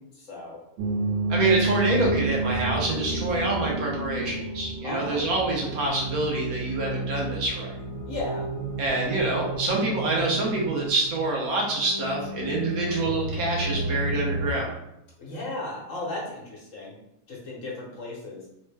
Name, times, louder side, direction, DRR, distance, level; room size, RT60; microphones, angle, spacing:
voice 1, 0.1-0.6 4.8-5.3 8.0-8.5 15.2-17.0 17.3-18.5, left 2 dB, 60° left, -3 dB, 1.3 m, -35 dB
sound 1, 0.8-14.5, right 2 dB, 60° right, 0.9 m, -30 dB
voice 2, 1.3-7.8 8.8-14.8, right 2 dB, 85° right, -2 dB, 1.4 m, -26 dB
3.6 x 2.1 x 3.3 m, 0.82 s
omnidirectional pair, 1.5 m